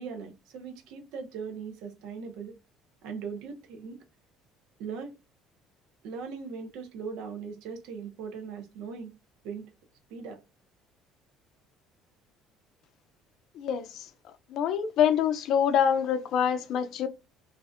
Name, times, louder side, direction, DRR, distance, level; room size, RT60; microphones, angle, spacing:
voice 1, 0.0-2.6 3.0-4.0 4.8-5.1 6.0-9.1 9.4-9.7 10.1-10.4, right 5 dB, 80° right, 0.6 m, -39 dB
voice 2, 13.6-14.1 14.5-17.1, left 8 dB, 60° left, 0.4 m, -25 dB
2.5 x 2.1 x 2.4 m
cardioid pair, 110°, 0 cm